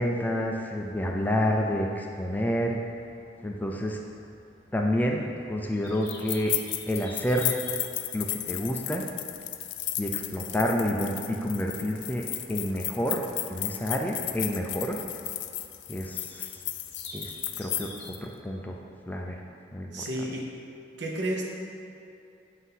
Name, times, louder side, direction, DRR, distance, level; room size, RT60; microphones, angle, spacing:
voice 1, 0.0-2.8 3.4-4.0 4.7-6.6 6.9-7.6 8.1-9.0 10.0-13.2 13.5-15.0 15.9-16.6 17.1-17.9 18.2-18.8 19.1-19.4 19.7-20.0, equal, 10° left, 1 dB, 0.3 m, -29 dB
sound 1, 0.8-19.2, left 1 dB, 40° left, 1.1 m, -52 dB
sound 2, 6.1-18.2, left 14 dB, 85° left, 0.3 m, -34 dB
voice 2, 19.9-20.5 21.0-21.5, right 1 dB, 80° right, -1 dB, 0.9 m, -31 dB
7.9 x 2.7 x 5.5 m, 2.7 s
head